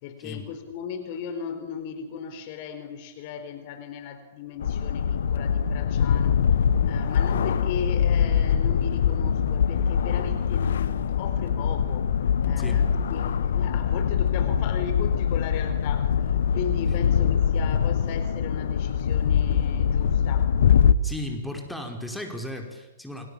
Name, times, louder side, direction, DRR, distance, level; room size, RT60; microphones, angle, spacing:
voice 1, 0.0-6.4 6.9-20.5, left 7 dB, 45° left, 10 dB, 4.5 m, -37 dB
sound 1, 4.6-20.9, left 8 dB, 65° left, 1.4 m, -23 dB
voice 2, 21.0-23.3, left 1 dB, 5° left, 3 dB, 5.0 m, -35 dB
29.5 x 25.5 x 7.3 m, 1.1 s
figure-of-eight pair, 110°, 0 cm